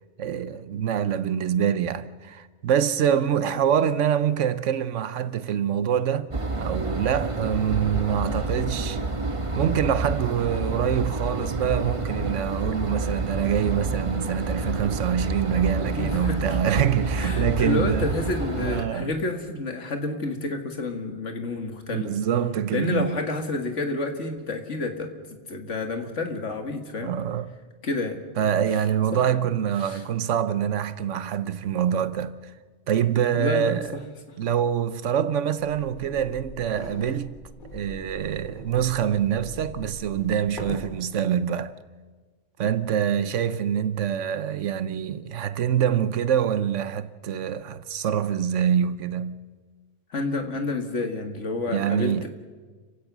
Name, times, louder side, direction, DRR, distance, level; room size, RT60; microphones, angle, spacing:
voice 1, 0.2-6.3 6.6-9.0 9.5-18.1 18.6-19.2 21.9-23.2 27.0-27.6 28.4-32.5 32.9-34.0 34.4-37.4 37.7-41.7 42.6-49.4 51.6-52.3, right 9 dB, 90° right, 1.2 m, -25 dB
sound 1, 6.3-18.8, right 3 dB, 30° right, 1.2 m, -28 dB
voice 2, 15.9-16.6 17.2-22.1 22.7-25.1 25.5-27.1 27.8-28.2 29.1-29.2 29.8-30.0 33.3-34.0 50.1-52.3, left 3 dB, 80° left, 2.2 m, -29 dB
sound 2, 35.6-40.9, left 1 dB, 40° left, 3.5 m, -41 dB
29.0 x 16.0 x 6.1 m
omnidirectional pair, 1.2 m